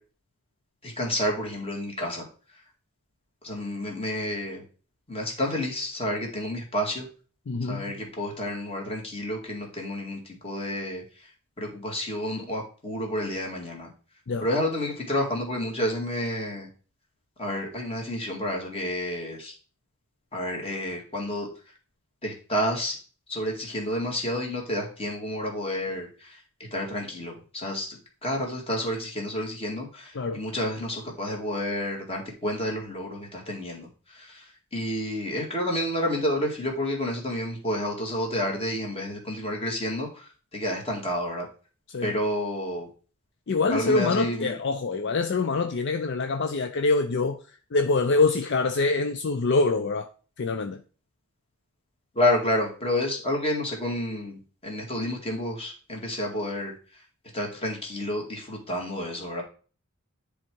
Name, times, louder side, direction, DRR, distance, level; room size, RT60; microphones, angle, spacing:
voice 1, 0.8-2.2 3.4-4.6 5.1-7.1 7.7-11.0 11.6-13.9 14.4-16.7 17.4-19.5 20.3-21.5 22.2-23.0 23.3-26.4 26.7-34.4 34.7-41.5 42.0-42.9 43.7-44.5 52.2-56.7 57.3-59.4, left 1 dB, 25° left, 2.0 m, -30 dB
voice 2, 7.5-7.8 14.3-14.5 30.1-30.4 41.9-42.1 43.5-47.4 47.7-50.1 50.4-50.8, left 3 dB, 55° left, 0.5 m, -25 dB
10.0 x 3.6 x 4.6 m
head